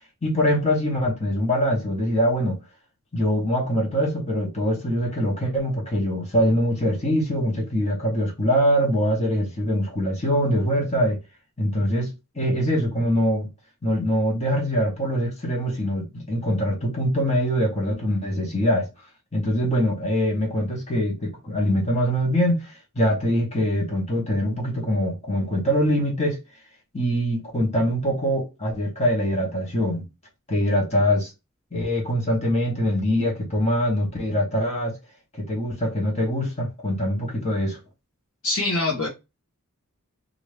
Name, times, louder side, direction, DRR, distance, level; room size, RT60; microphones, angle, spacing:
voice 1, 0.2-2.6 3.1-11.2 11.6-12.1 12.3-13.5 13.8-18.9 19.3-26.4 26.9-30.1 30.5-31.3 31.7-34.9 35.4-37.8, equal, 30° left, 1.1 m, -23 dB
voice 2, 38.4-39.1, left 2 dB, 60° left, 0.9 m, -24 dB
2.8 x 2.5 x 3.2 m
head